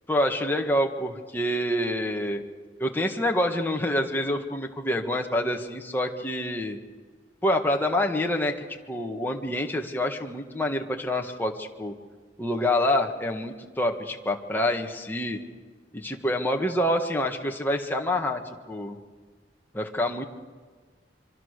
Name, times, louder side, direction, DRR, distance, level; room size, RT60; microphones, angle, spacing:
voice 1, 0.1-2.4 2.8-6.8 7.4-8.6 8.9-11.9 12.4-15.4 15.9-18.4 18.7-19.0 19.7-20.3, left 1 dB, 10° left, 2 dB, 1.7 m, -27 dB
26.0 x 25.0 x 6.7 m, 1.5 s
head